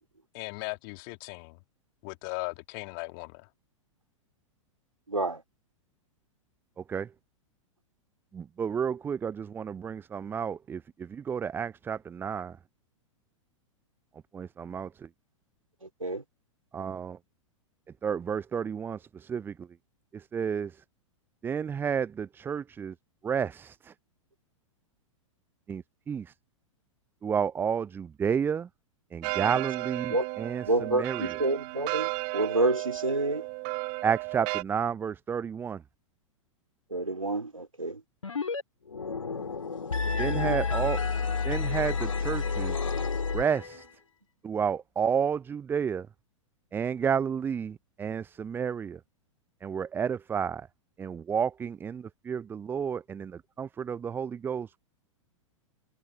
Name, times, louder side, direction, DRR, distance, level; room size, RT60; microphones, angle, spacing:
voice 1, 0.3-1.6 2.0-3.5, left 33 dB, 40° left, 2.8 m, -38 dB
voice 2, 5.1-5.4 15.8-16.2 30.1-30.3 30.6-33.5 36.9-38.0 39.3-39.5 40.2-40.6, right 2 dB, 85° right, 2.6 m, -29 dB
voice 3, 6.8-7.1 8.3-12.6 14.3-15.1 16.7-17.2 18.0-19.7 20.1-20.8 21.4-22.9 23.2-23.9 25.7-26.3 27.2-28.7 29.1-31.3 34.0-35.8 40.2-41.0 41.4-42.8 43.3-43.9 44.4-46.1 46.7-49.0 49.6-50.7 51.0-54.8, right 7 dB, 15° right, 0.5 m, -31 dB
sound 1, 29.2-34.6, right 38 dB, 35° right, 0.9 m, -34 dB
sound 2, 38.2-38.6 38.9-43.8, left 5 dB, 75° left, 2.7 m, -30 dB
figure-of-eight pair, 100°, 17 cm